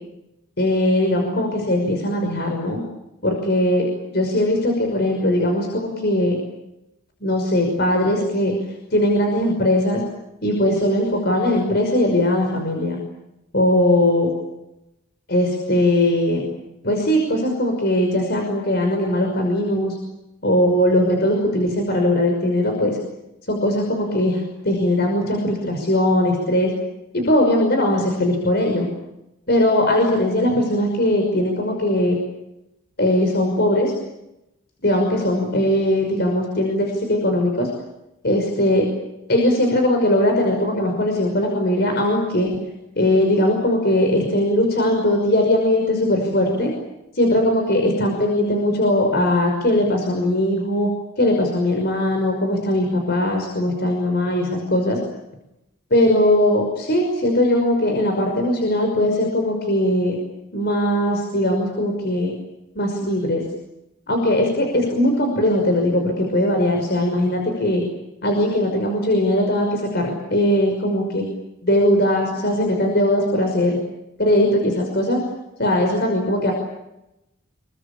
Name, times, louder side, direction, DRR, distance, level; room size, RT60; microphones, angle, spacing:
voice 1, 0.6-2.8 3.2-3.8 4.1-6.4 7.2-8.5 8.9-10.0 10.4-13.0 13.5-14.3 15.3-16.4 16.8-20.0 20.4-23.0 23.5-26.7 27.1-28.9 29.5-32.2 33.0-33.9 34.8-37.7 38.2-38.9 39.3-42.5 43.0-46.7 47.1-50.9 51.2-55.0 55.9-60.2 60.5-62.3 62.8-63.4 64.1-67.8 68.2-71.2 71.6-73.8 74.2-75.2 75.6-76.5, left 1 dB, 50° left, 2 dB, 5.8 m, -20 dB
28.0 x 22.5 x 8.7 m, 0.90 s
head